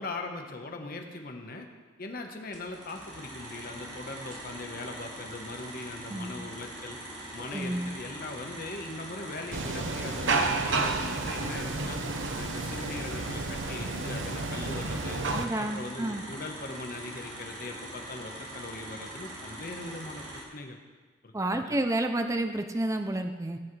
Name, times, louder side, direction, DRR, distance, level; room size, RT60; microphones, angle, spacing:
voice 1, 0.0-1.7 2.0-7.0 7.3-12.0 12.3-15.2 15.6-20.8 21.2-21.3 21.6-21.8, left 2 dB, 45° left, 3 dB, 1.2 m, -40 dB
sound 1, 2.5-20.4, right 1 dB, 40° right, 2.7 m, -43 dB
voice 2, 6.1-6.4 7.5-7.9 15.3-16.2 21.3-23.6, right 1 dB, 15° right, 6 dB, 0.4 m, -30 dB
sound 2, 9.5-15.5, right 3 dB, 75° right, 0.8 m, -31 dB
18.0 x 8.4 x 3.3 m, 1.4 s
head